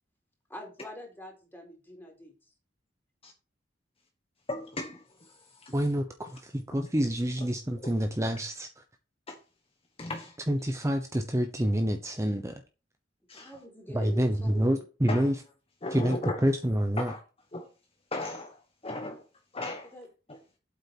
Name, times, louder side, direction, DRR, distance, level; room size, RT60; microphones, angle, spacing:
voice 1, 0.5-2.3 13.3-14.9 19.9-20.1, left 1 dB, 10° left, 4.0 m, -44 dB
voice 2, 4.5-5.7 9.3-9.4 10.0-10.4 13.3-13.5 15.1-15.3 15.8-16.4 17.1-17.2 17.5-17.7 18.1-19.2 19.5-19.9 20.3-20.4, left 2 dB, 30° left, 1.3 m, -37 dB
voice 3, 5.7-8.7 10.5-12.5 13.9-15.3 15.9-17.1, equal, 15° right, 0.9 m, -27 dB
8.7 x 8.0 x 4.6 m
head